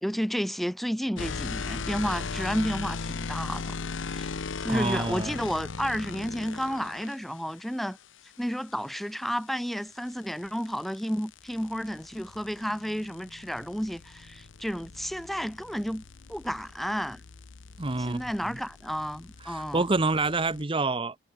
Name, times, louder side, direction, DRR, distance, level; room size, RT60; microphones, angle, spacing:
voice 1, 0.0-3.8 4.1-4.3 4.6-8.0 8.4-16.0 16.3-17.2 18.0-19.9, equal, ahead, 1.2 m, -31 dB
sound 1, 1.2-7.2 9.6-20.6, left 4 dB, 75° left, 0.8 m, -38 dB
voice 2, 4.7-5.4 17.8-18.2 19.4-21.3, right 3 dB, 30° right, 1.0 m, -27 dB
head